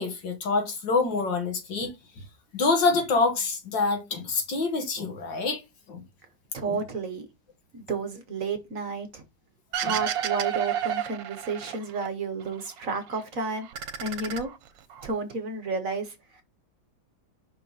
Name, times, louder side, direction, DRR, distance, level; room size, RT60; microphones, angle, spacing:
voice 1, 0.0-2.2 2.5-5.6 5.9-6.0 6.7-6.8 9.8-10.0, left 3 dB, 85° left, 2.3 m, -26 dB
voice 2, 6.5-7.3 7.7-9.2 9.7-13.7 14.0-14.5 15.0-16.4, right 4 dB, 50° right, 1.3 m, -31 dB
sound 1, 9.7-12.1 12.4-13.2 13.6-15.1, right 10 dB, 80° right, 1.4 m, -31 dB
5.7 x 3.6 x 5.3 m
omnidirectional pair, 2.0 m